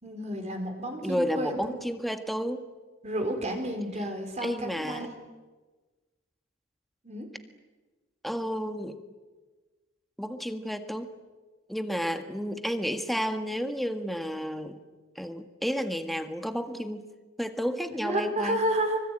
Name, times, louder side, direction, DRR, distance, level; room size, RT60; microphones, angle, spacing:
voice 1, 0.0-1.9 3.0-5.1 7.0-7.3 17.9-19.0, right 1 dB, 35° right, 4 dB, 4.2 m, -31 dB
voice 2, 1.0-2.7 4.4-5.1 8.2-9.0 10.2-11.1 11.7-14.8 15.1-17.0 17.4-18.6, equal, ahead, 7 dB, 1.7 m, -31 dB
24.5 x 24.5 x 9.0 m, 1.3 s
head